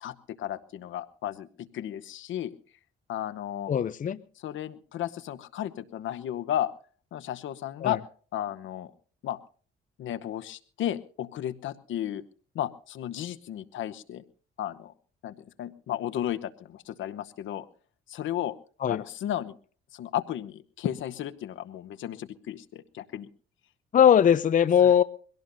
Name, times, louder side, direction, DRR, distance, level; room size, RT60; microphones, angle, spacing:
voice 1, 0.0-2.5 3.1-3.7 4.4-6.7 7.1-8.0 8.3-8.9 9.2-9.4 10.0-12.2 12.5-14.2 14.6-14.9 15.2-17.7 18.1-18.5 18.9-19.5 19.9-23.3, left 11 dB, 75° left, 0.9 m, -34 dB
voice 2, 3.7-4.2 7.8-8.0 18.8-19.0 23.9-25.0, left 8 dB, 40° left, 0.6 m, -20 dB
23.5 x 17.0 x 2.6 m
cardioid pair, 90°, 20 cm